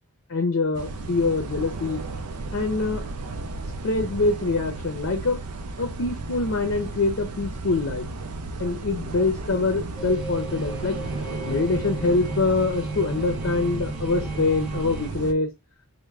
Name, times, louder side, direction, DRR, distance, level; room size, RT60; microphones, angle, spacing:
voice 1, 0.3-2.0 2.5-3.0 3.8-5.4 5.8-8.1 8.6-11.0 11.4-15.5, left 3 dB, 55° left, 5 dB, 0.6 m, -24 dB
sound 1, 0.7-15.3, right 3 dB, 90° right, 0.5 m, -34 dB
sound 2, 10.0-15.1, right 2 dB, 5° right, 0.4 m, -34 dB
3.4 x 2.1 x 3.2 m, 0.22 s
head